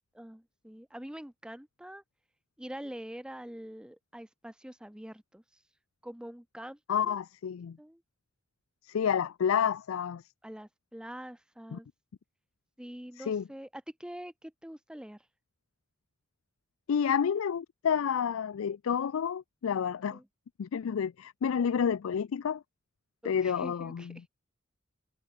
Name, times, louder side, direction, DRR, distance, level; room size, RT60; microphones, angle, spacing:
voice 1, 0.1-2.0 2.6-5.6 6.0-6.8 7.0-7.2 7.8-8.0 10.4-11.9 12.8-15.3 20.1-20.3 23.2-24.2, equal, 5° right, 0.6 m, -45 dB
voice 2, 6.9-7.8 8.9-10.2 11.7-11.8 13.2-13.4 16.9-20.2 20.6-22.6 23.2-24.2, left 7 dB, 85° left, 0.4 m, -29 dB
head